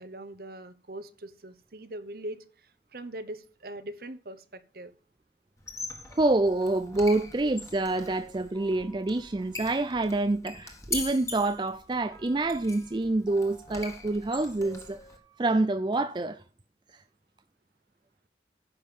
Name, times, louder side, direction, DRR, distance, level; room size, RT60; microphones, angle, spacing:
voice 1, 0.0-4.9, right 1 dB, 55° right, 0.9 m, -42 dB
Squeak, 5.6-15.2, left 3 dB, 15° left, 1.6 m, -42 dB
voice 2, 6.1-15.0 15.4-16.4, right 2 dB, 25° right, 0.4 m, -27 dB
10.0 x 5.6 x 7.1 m
head